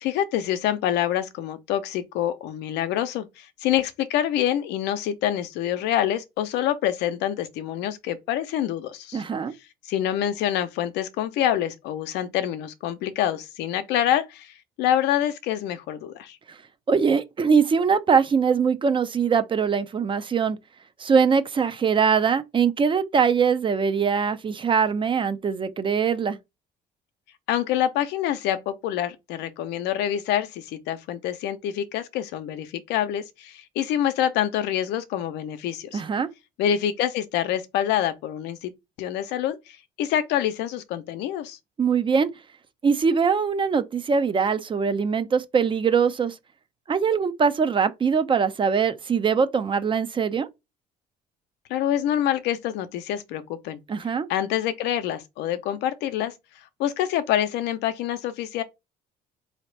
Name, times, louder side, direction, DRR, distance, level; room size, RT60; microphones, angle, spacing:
voice 1, 0.0-9.2 9.8-16.4 27.5-36.0 36.6-38.7 39.0-41.6 51.7-53.8 54.3-56.3 56.8-58.6, left 11 dB, 85° left, 0.7 m, -26 dB
voice 2, 9.1-9.5 16.9-20.6 21.0-26.4 35.9-36.3 41.8-42.3 42.8-46.4 46.9-50.5 53.9-54.3, right 6 dB, 30° right, 0.5 m, -22 dB
4.1 x 2.8 x 3.2 m
cardioid pair, 110°, 17 cm